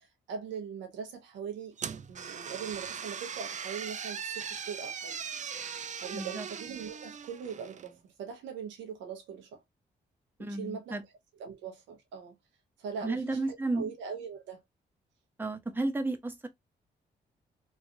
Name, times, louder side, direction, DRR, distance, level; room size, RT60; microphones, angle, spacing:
voice 1, 0.0-1.8 2.1-5.2 6.0-9.6 10.4-11.0 11.4-12.3 12.8-14.6, right 7 dB, 85° right, 1.0 m, -41 dB
sound 1, 1.8-7.9, right 7 dB, 40° right, 0.4 m, -39 dB
voice 2, 6.1-6.5 10.4-11.0 13.0-13.9 15.4-16.5, right 2 dB, 10° right, 0.8 m, -33 dB
3.2 x 2.4 x 2.6 m
supercardioid pair, 50°, 19 cm